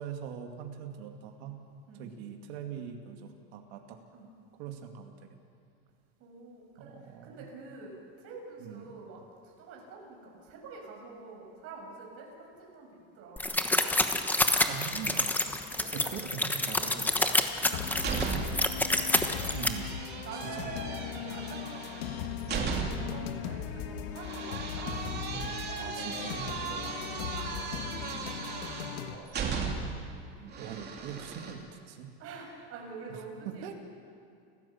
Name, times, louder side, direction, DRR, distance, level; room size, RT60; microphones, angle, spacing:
voice 1, 0.0-1.6 2.0-4.0 4.6-5.2 6.8-7.5 8.6-9.0 14.7-15.4 15.9-17.1 19.5-19.9 20.3-20.7 24.8-26.5 29.8-30.0 30.6-32.1 33.1-33.2 33.4-33.7, right 8 dB, 85° right, 3 dB, 2.3 m, -42 dB
voice 2, 6.2-9.2 9.6-13.5 14.5-14.9 15.2-15.4 15.7-16.3 16.8-18.5 19.0-19.2 20.2-24.9 25.3-29.4 30.4-30.5 32.2-33.7, right 3 dB, 50° right, -1 dB, 6.7 m, -47 dB
sound 1, 13.4-19.7, left 2 dB, 5° left, 1.1 m, -28 dB
sound 2, 17.7-29.1, left 9 dB, 90° left, 1.8 m, -39 dB
sound 3, 17.7-18.7 19.0-23.2 24.2-30.0 30.5-31.5, right 5 dB, 35° right, 3.1 m, -37 dB
29.0 x 15.5 x 7.2 m, 2.4 s
cardioid pair, 145°, 30 cm